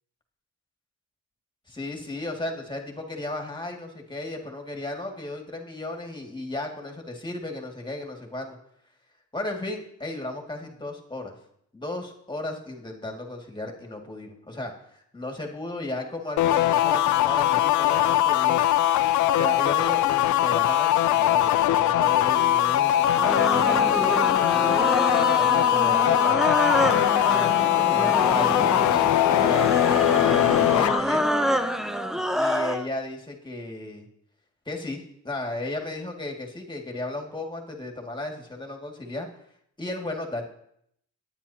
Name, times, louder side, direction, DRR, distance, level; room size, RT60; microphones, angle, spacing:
voice 1, 1.7-8.6 9.3-11.3 11.7-18.7 19.3-24.8 25.4-26.5 27.3-28.9 29.3-31.3 32.3-34.1 34.7-39.3 39.8-40.5, left 2 dB, 15° left, 2 dB, 2.1 m, -34 dB
sound 1, 16.4-31.0, left 12 dB, 75° left, 0.6 m, -21 dB
sound 2, 22.9-32.9, equal, ahead, 0.6 m, -27 dB
25.0 x 9.3 x 2.8 m, 0.72 s
cardioid pair, 90°, 30 cm